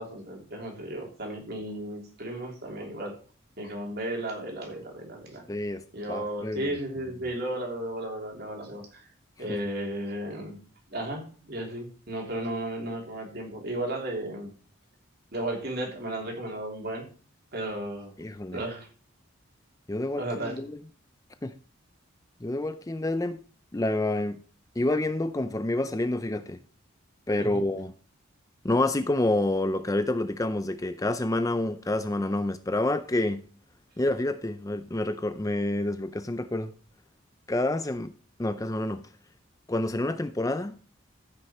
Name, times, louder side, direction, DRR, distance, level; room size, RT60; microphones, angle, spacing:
voice 1, 0.0-3.2 3.6-5.4 5.9-9.1 9.4-10.6 10.9-14.5 15.3-17.1 17.5-18.1 18.5-18.9 20.2-20.6 27.4-27.6, right 1 dB, 50° right, 3.0 m, -34 dB
voice 2, 5.5-5.8 6.1-6.8 9.5-9.6 18.2-18.6 19.9-20.8 21.4-21.6 22.4-23.4 23.7-24.4 24.8-26.6 27.3-27.9 28.6-33.4 34.0-36.7 37.5-38.1 38.4-39.1 39.7-40.7, left 2 dB, 15° left, 0.4 m, -28 dB
14.5 x 6.3 x 4.3 m
head